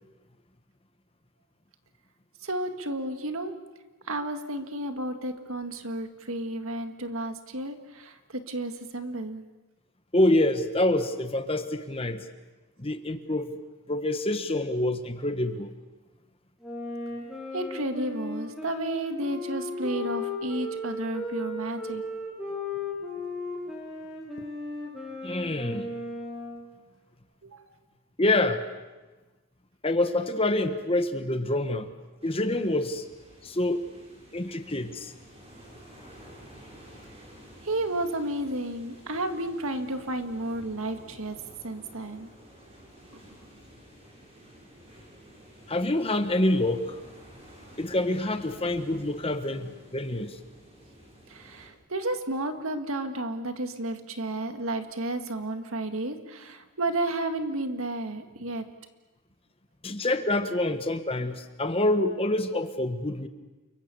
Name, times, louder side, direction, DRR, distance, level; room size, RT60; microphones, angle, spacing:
voice 1, 2.4-3.5 4.1-9.4 17.5-22.0 27.4-27.6 37.6-41.4 41.6-42.3 51.3-58.7, right 1 dB, 70° right, 7 dB, 1.9 m, -32 dB
voice 2, 10.1-12.2 12.8-13.5 13.9-15.7 25.2-25.9 28.2-28.6 29.8-31.9 32.2-33.0 33.4-33.9 34.3-35.1 45.7-47.0 47.8-50.4 59.8-63.3, left 1 dB, 25° left, 8 dB, 1.3 m, -26 dB
Wind instrument woodwind instrument, 16.6-26.7, left 2 dB, ahead, 6.5 m, -36 dB
sound 1, 32.2-51.7, equal, 25° right, 5.9 m, -51 dB
29.5 x 23.5 x 7.0 m, 1.2 s
head